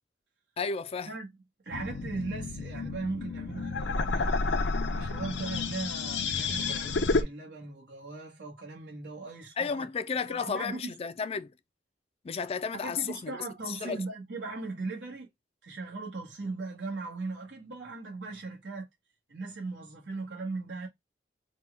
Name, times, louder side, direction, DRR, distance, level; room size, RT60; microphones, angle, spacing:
voice 1, 0.6-1.1 9.6-11.5 12.2-13.3 13.7-14.0, left 5 dB, 35° left, 0.4 m, -33 dB
voice 2, 1.6-4.3 4.9-9.8 10.2-10.9 12.8-15.3 15.6-18.9 19.3-20.9, right 3 dB, 85° right, 1.4 m, -38 dB
sound 1, 1.7-7.2, left 3 dB, 90° left, 0.7 m, -30 dB
4.3 x 2.3 x 3.3 m
head